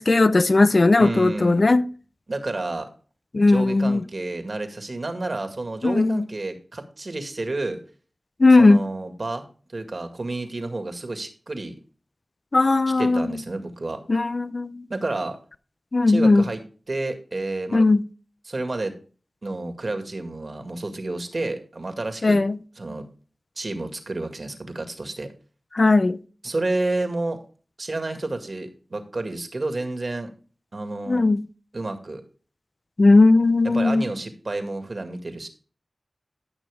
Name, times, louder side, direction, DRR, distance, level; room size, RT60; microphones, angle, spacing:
voice 1, 0.0-1.8 3.3-4.0 5.8-6.2 8.4-8.9 12.5-13.4 14.1-14.9 15.9-16.5 17.7-18.0 22.2-22.6 25.7-26.2 31.1-31.4 33.0-34.1, left 3 dB, 55° left, 0.6 m, -17 dB
voice 2, 1.0-1.7 2.3-2.9 3.5-7.8 8.6-9.4 9.7-11.8 13.0-14.0 14.9-15.4 16.1-16.6 16.9-17.8 18.5-18.9 19.4-22.4 22.8-23.1 23.6-25.3 26.4-27.4 27.8-30.3 30.7-31.2 31.7-32.2 33.6-35.5, right 2 dB, 60° right, 2.0 m, -30 dB
13.5 x 6.3 x 3.5 m
cardioid pair, 40°, 0 cm